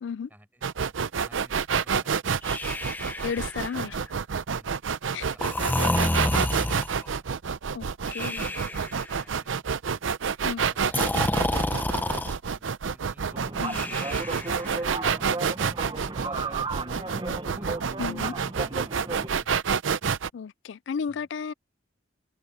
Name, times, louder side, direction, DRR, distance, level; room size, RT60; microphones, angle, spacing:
voice 1, 0.3-3.0 3.8-4.1 4.5-4.8 21.1-21.3, equal, 10° right, 5.2 m, -57 dB
sound 1, 0.6-20.3, right 6 dB, 85° right, 0.6 m, -28 dB
Breathing, 2.4-4.0 5.4-7.1 8.1-9.1 10.9-12.3 13.6-14.8, left 1 dB, 10° left, 0.6 m, -29 dB
voice 2, 3.2-4.0 5.1-5.2 7.7-8.5 10.4-10.6 13.6-13.8 18.0-18.3 20.3-21.5, left 6 dB, 70° left, 0.4 m, -33 dB
sound 2, 13.3-19.3, right 3 dB, 25° right, 1.0 m, -35 dB
head